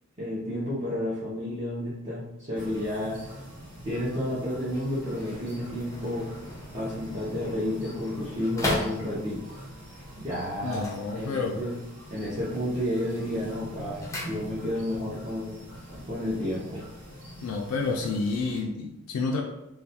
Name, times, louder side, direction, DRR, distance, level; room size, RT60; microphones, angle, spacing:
voice 1, 0.2-3.2 3.8-6.3 6.7-9.4 10.2-10.9 11.1-11.7 12.1-15.5 16.1-16.8, left 1 dB, 30° right, -10 dB, 0.6 m, -31 dB
sound 1, 2.5-18.6, equal, 60° right, 1.1 m, -44 dB
sound 2, 4.5-9.5 10.6-11.7 12.0-12.5 12.9-14.9 15.2-15.3, left 1 dB, 15° left, 0.4 m, -37 dB
voice 2, 10.6-11.6 17.4-19.4, left 4 dB, 80° left, 2 dB, 0.3 m, -29 dB
2.3 x 2.2 x 2.7 m, 0.92 s
head